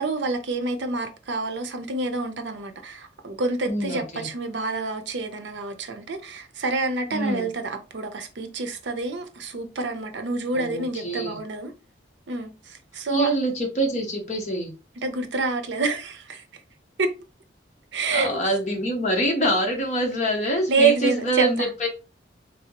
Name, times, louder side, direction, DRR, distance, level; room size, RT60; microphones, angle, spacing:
voice 1, 0.0-11.7 12.3-13.3 15.0-16.4 17.0-17.1 17.9-18.4 20.7-21.7, right 3 dB, 75° right, 0.6 m, -27 dB
voice 2, 3.7-4.3 7.1-7.5 10.5-11.4 13.1-14.7 18.1-21.9, right 1 dB, 40° left, 0.9 m, -25 dB
3.5 x 2.6 x 2.9 m
head